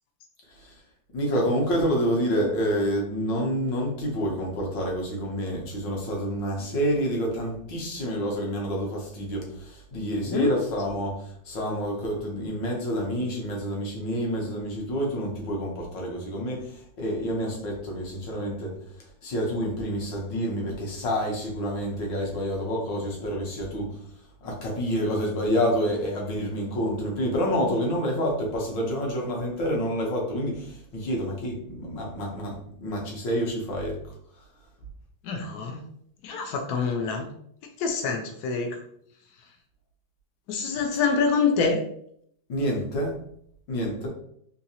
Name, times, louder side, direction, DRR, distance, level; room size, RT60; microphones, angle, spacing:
voice 1, 0.5-0.8 1.1-24.0 24.4-34.0 34.4-34.5 42.5-43.2 43.7-44.1, equal, 65° left, -1 dB, 1.6 m, -28 dB
voice 2, 35.2-35.8 36.2-37.3 37.8-38.8 40.5-41.8, left 5 dB, 80° left, 3 dB, 0.8 m, -26 dB
3.9 x 2.8 x 2.7 m, 0.68 s
omnidirectional pair, 2.2 m